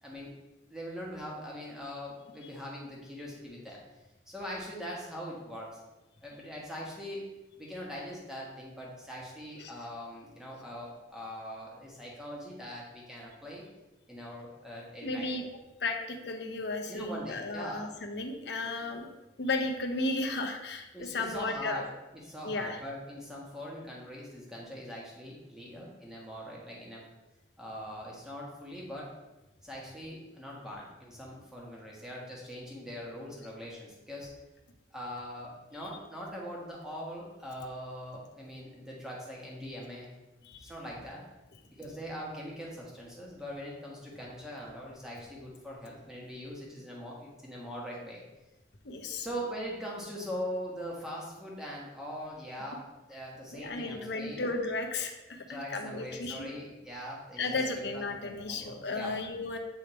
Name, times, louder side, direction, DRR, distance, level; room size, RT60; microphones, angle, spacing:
voice 1, 0.0-0.3 0.7-3.8 4.3-5.8 6.2-7.3 7.6-13.6 14.1-15.3 16.9-17.9 20.9-21.9 22.1-27.0 27.6-29.1 29.6-34.3 34.9-40.1 40.6-41.2 41.7-48.2 49.2-52.8 53.1-54.5 55.3-57.6 57.9-59.1, equal, 5° right, -4 dB, 1.3 m, -42 dB
voice 2, 15.0-15.5 15.8-19.1 19.4-21.8 22.4-22.8 35.8-35.9 40.4-40.7 48.8-49.3 53.5-56.5 57.4-59.6, left 2 dB, 60° left, 3 dB, 0.8 m, -34 dB
8.2 x 3.4 x 4.3 m, 1.1 s
head